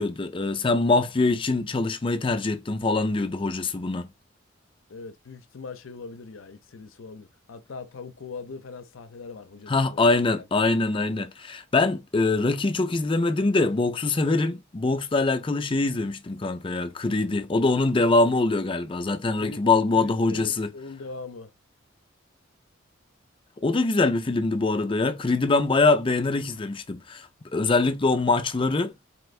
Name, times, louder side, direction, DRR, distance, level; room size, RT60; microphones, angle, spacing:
voice 1, 0.0-4.1 9.7-20.7 23.6-28.9, left 3 dB, 25° left, 0.5 m, -23 dB
voice 2, 4.9-10.1 10.3-10.5 19.4-19.6 20.0-21.5, left 4 dB, 75° left, 0.6 m, -41 dB
4.3 x 2.5 x 3.2 m
head